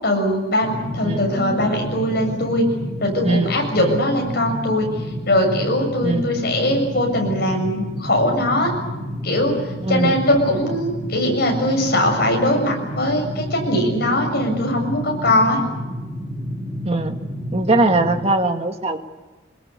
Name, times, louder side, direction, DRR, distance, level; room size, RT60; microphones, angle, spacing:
voice 1, 0.0-2.7 3.0-4.9 5.3-8.7 9.2-9.6 9.9-15.6, left 1 dB, 55° left, 2 dB, 7.3 m, -20 dB
sound 1, 0.6-18.3, equal, 15° right, 2.3 m, -30 dB
voice 2, 3.2-4.0 6.0-6.3 9.8-10.2 16.8-17.2 17.5-19.0, right 2 dB, 30° right, 5 dB, 1.9 m, -21 dB
25.0 x 21.0 x 8.4 m, 1.2 s
head